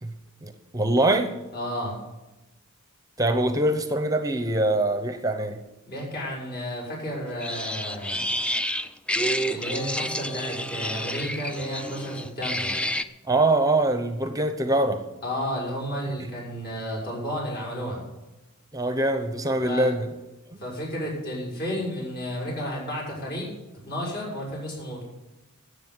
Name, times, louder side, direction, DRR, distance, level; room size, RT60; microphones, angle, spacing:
voice 1, 0.4-1.3 3.2-5.6 13.3-15.0 18.7-20.1 20.5-20.6, right 2 dB, 15° right, 8 dB, 0.8 m, -23 dB
voice 2, 1.5-2.0 5.9-8.2 9.5-12.8 15.2-18.0 19.6-19.9 20.6-23.5 23.9-25.0, equal, 50° left, -3 dB, 6.1 m, -32 dB
sound 1, 7.4-13.0, equal, 5° left, 0.4 m, -29 dB
13.0 x 8.2 x 8.1 m, 1.0 s
head